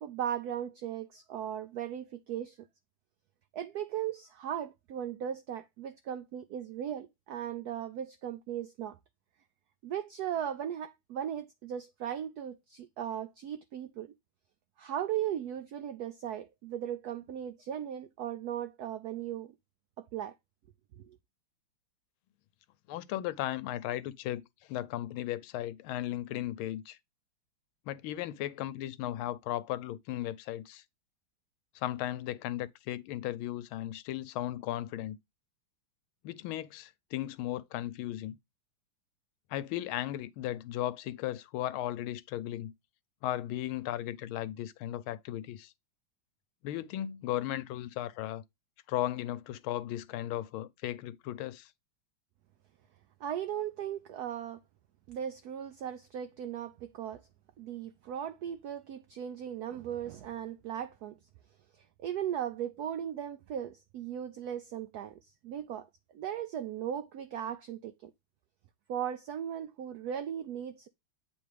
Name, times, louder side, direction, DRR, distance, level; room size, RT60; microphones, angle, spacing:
voice 1, 0.0-2.6 3.5-9.0 9.8-14.1 14.8-19.5 20.0-20.3 53.2-54.6 55.1-57.2 57.6-61.2 62.0-65.2 65.4-65.9 66.1-68.1 68.9-70.9, right 10 dB, 90° right, 0.8 m, -37 dB
voice 2, 22.9-24.4 24.7-27.0 27.9-30.8 31.7-35.2 36.2-38.4 39.5-42.7 43.2-45.7 46.6-48.4 48.9-51.7, left 13 dB, 85° left, 1.4 m, -36 dB
8.7 x 3.5 x 3.2 m
omnidirectional pair, 2.2 m